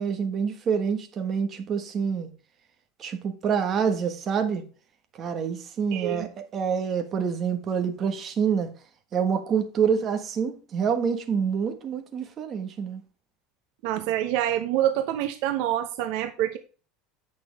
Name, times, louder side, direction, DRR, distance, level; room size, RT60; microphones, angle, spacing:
voice 1, 0.0-2.3 3.0-4.6 5.2-8.7 9.1-13.0, right 6 dB, 30° right, 1.3 m, -27 dB
voice 2, 5.9-6.3 13.8-16.6, right 12 dB, 60° right, 0.8 m, -26 dB
8.6 x 6.1 x 3.5 m
cardioid pair, 160°, 0 cm